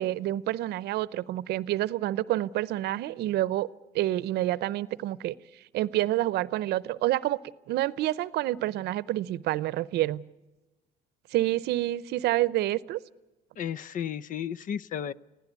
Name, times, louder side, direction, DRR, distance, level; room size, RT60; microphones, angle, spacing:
voice 1, 0.0-3.7 3.9-5.3 5.7-7.4 7.7-10.2 11.3-13.0, right 15 dB, 75° right, 20 dB, 0.7 m, -28 dB
voice 2, 13.6-15.1, left 9 dB, 50° left, 20 dB, 0.7 m, -33 dB
25.5 x 16.0 x 8.2 m, 1.1 s
cardioid pair, 110°, 17 cm